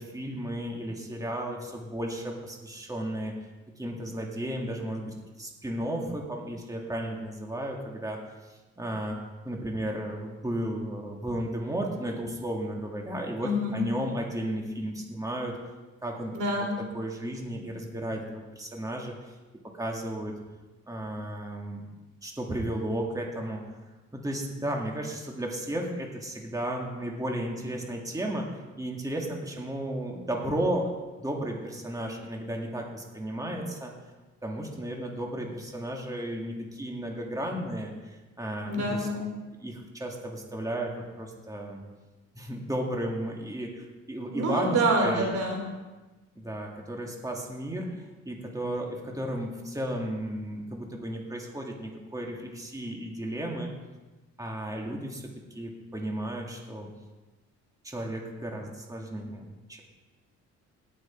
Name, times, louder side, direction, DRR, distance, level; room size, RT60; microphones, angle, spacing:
voice 1, 0.0-3.3 3.8-8.2 8.8-15.6 16.0-16.7 16.9-19.3 19.7-20.4 20.9-21.9 22.2-23.6 24.1-33.9 34.4-39.1 39.6-41.8 42.4-45.3 46.4-53.7 54.4-55.2 55.6-56.9 57.8-59.8, right 1 dB, 10° right, 0 dB, 2.1 m, -34 dB
voice 2, 13.4-13.8 16.3-16.7 38.6-39.3 44.3-45.7, right 1 dB, 70° right, 1 dB, 3.3 m, -27 dB
18.5 x 6.4 x 4.5 m, 1.2 s
cardioid pair, 90°, 30 cm